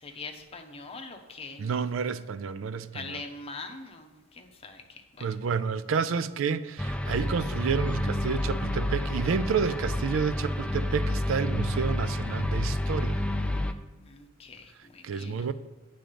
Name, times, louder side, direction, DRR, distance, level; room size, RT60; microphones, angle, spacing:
voice 1, 0.0-1.8 2.9-5.2 14.1-15.5, left 3 dB, 30° left, 0.8 m, -43 dB
voice 2, 1.6-3.2 5.2-13.2 15.0-15.5, right 6 dB, 80° right, 0.4 m, -30 dB
sound 1, 6.8-13.7, left 1 dB, 5° left, 0.3 m, -29 dB
9.0 x 3.8 x 6.7 m
head